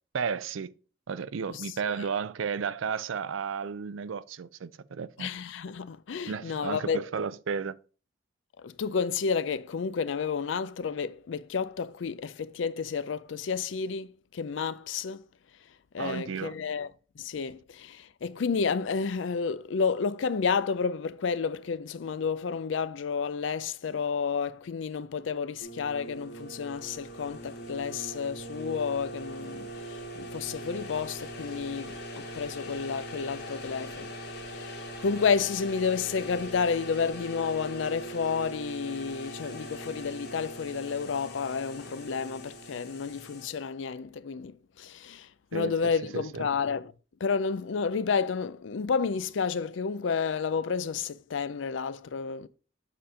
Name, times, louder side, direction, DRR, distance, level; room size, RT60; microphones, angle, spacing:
voice 1, 0.1-0.7 1.1-5.3 6.3-7.7 16.0-16.6 45.5-45.7 46.1-46.5, right 6 dB, 85° right, 0.5 m, -33 dB
voice 2, 5.2-7.1 8.6-15.2 15.9-16.9 17.2-46.9 47.2-52.5, left 5 dB, 75° left, 0.4 m, -31 dB
sound 1, 25.6-43.5, equal, 55° left, 1.8 m, -41 dB
7.5 x 4.3 x 5.0 m
head